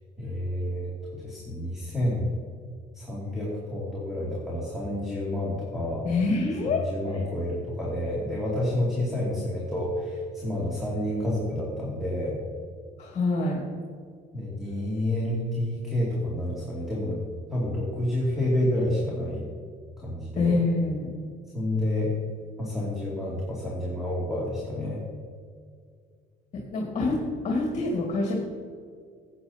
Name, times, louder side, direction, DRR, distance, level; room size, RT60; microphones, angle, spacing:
voice 1, 0.2-2.3 2.9-6.1 6.8-12.4 14.3-17.2 17.5-19.4 20.0-20.6 21.5-22.1 22.6-25.0, left 1 dB, ahead, -6 dB, 2.4 m, -29 dB
voice 2, 6.0-6.9 13.0-13.6 20.4-21.1 26.5-27.2 27.4-28.3, left 3 dB, 45° left, -1 dB, 1.9 m, -26 dB
14.5 x 8.7 x 2.8 m, 2.1 s
cardioid pair, 110°, 17 cm